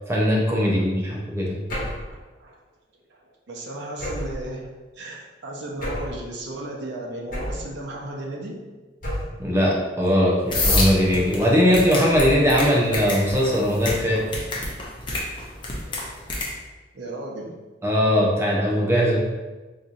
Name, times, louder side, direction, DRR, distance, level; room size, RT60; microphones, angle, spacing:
voice 1, 0.1-1.6 9.4-14.2 17.8-19.2, equal, 15° right, -3 dB, 0.7 m, -20 dB
sound 1, 1.7-2.1 4.0-4.4 5.8-6.2 7.3-7.7 9.0-9.5 10.6-11.1 12.1-12.6, equal, 50° left, 1.3 m, -28 dB
voice 2, 1.8-2.6 3.1-4.6 5.0-8.6 16.9-17.5, right 1 dB, 85° right, -1 dB, 0.7 m, -35 dB
sound 2, 10.5-16.5, left 2 dB, 25° left, 0.6 m, -28 dB
4.0 x 2.9 x 2.5 m, 1.2 s
head